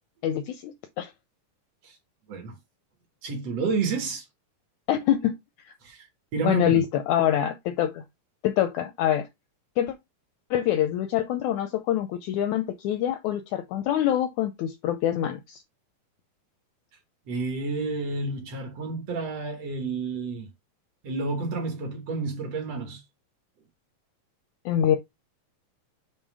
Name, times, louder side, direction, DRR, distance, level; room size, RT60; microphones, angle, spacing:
voice 1, 0.2-1.1 4.9-5.3 6.4-8.0 8.4-9.3 9.8-9.9 10.5-15.6 24.6-25.0, left 11 dB, 80° left, 1.7 m, -25 dB
voice 2, 3.2-4.3 5.8-6.1 6.3-6.7 17.3-20.5 21.0-23.0, right 4 dB, 60° right, 2.0 m, -30 dB
7.2 x 2.9 x 4.8 m
omnidirectional pair, 3.9 m